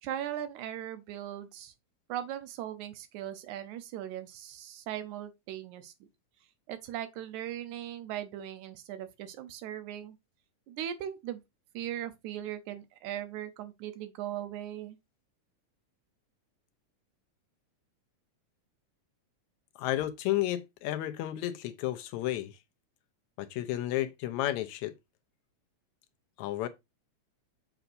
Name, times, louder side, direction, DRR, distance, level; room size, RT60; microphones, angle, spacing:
voice 1, 0.0-1.7 2.1-5.9 6.7-10.2 10.7-11.4 11.7-15.0, right 11 dB, 80° right, 2.2 m, -39 dB
voice 2, 19.8-22.6 23.4-24.9 26.4-26.7, left 14 dB, 80° left, 1.9 m, -32 dB
6.9 x 5.9 x 2.6 m
omnidirectional pair, 3.4 m